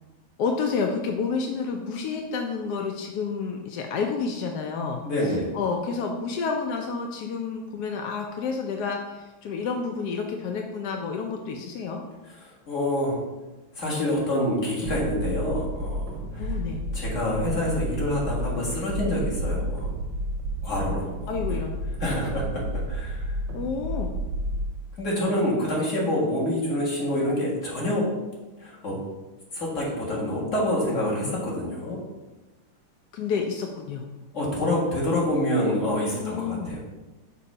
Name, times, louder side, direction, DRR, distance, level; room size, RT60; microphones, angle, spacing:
voice 1, 0.4-12.0 16.4-16.8 21.3-21.7 23.5-24.2 33.1-34.0 36.2-36.7, left 5 dB, 75° left, 2 dB, 0.9 m, -30 dB
voice 2, 5.0-5.5 12.4-13.2 13.8-16.6 16.9-19.9 20.6-21.6 22.0-23.4 25.0-28.1 28.6-29.0 29.5-32.0 34.3-36.8, left 1 dB, 40° left, -4 dB, 1.8 m, -27 dB
sound 1, 14.8-24.7, right 1 dB, 70° right, 1.1 m, -31 dB
6.7 x 2.8 x 5.3 m, 1.2 s
omnidirectional pair, 2.3 m